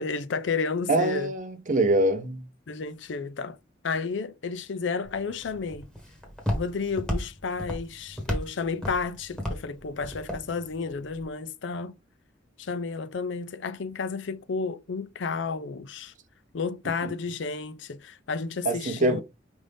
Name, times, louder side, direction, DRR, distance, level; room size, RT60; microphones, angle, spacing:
voice 1, 0.0-1.3 2.7-3.6 3.8-5.9 6.5-11.9 12.6-16.1 16.5-19.2, left 4 dB, 70° left, 0.5 m, -32 dB
voice 2, 0.9-2.4 18.6-19.2, right 2 dB, 45° right, 0.7 m, -24 dB
Walk footsteps, 5.1-11.2, equal, 5° left, 1.3 m, -34 dB
5.3 x 2.6 x 3.4 m
head